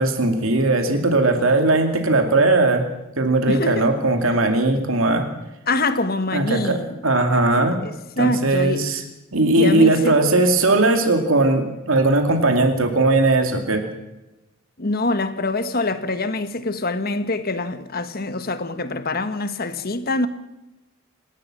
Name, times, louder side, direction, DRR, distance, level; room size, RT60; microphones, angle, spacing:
voice 1, 0.0-2.8 3.2-5.3 6.3-7.8 8.2-9.0 9.3-13.8, right 2 dB, 80° right, 2.4 m, -18 dB
voice 2, 3.5-3.9 5.7-7.0 7.7-8.8 9.6-10.2 14.8-20.3, left 2 dB, 45° left, 1.4 m, -24 dB
27.5 x 12.5 x 7.6 m
head